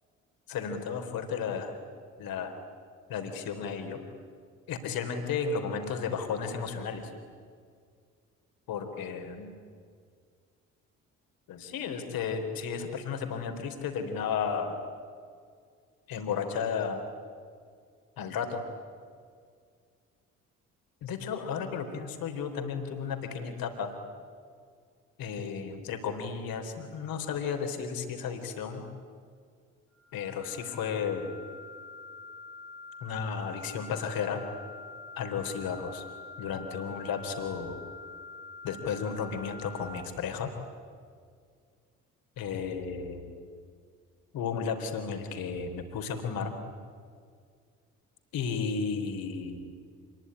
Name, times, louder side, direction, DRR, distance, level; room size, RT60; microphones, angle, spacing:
voice 1, 0.5-1.7 2.2-2.5 3.1-4.0 4.7-7.1 8.7-9.5 11.5-14.8 16.1-17.0 18.2-18.6 21.0-23.9 25.2-28.9 30.1-31.3 33.0-34.4 35.2-36.0 36.4-37.8 38.6-40.5 42.4-43.3 44.3-46.5 48.3-49.7, left 6 dB, 60° left, 5 dB, 3.8 m, -33 dB
sound 1, 29.9-39.9, left 3 dB, 80° left, 4.8 m, -46 dB
27.0 x 22.0 x 9.9 m, 2.1 s
figure-of-eight pair, 50°, 39 cm